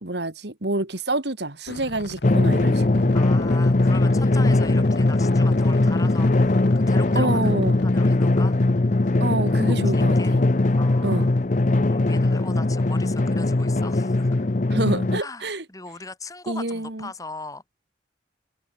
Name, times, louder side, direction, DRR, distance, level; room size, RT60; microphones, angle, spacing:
voice 1, 0.0-3.1 7.2-7.8 9.2-10.4 11.0-11.3 14.7-15.6 16.5-17.1, right 2 dB, 60° right, 2.2 m, -27 dB
sound 1, 1.7-7.9, left 1 dB, 60° left, 3.0 m, -40 dB
Drum, 2.2-15.2, left 2 dB, 40° left, 0.7 m, -20 dB
voice 2, 3.1-7.5 7.8-8.6 9.8-10.3 10.8-11.4 11.9-14.5 15.2-17.6, left 3 dB, 15° left, 2.4 m, -39 dB
head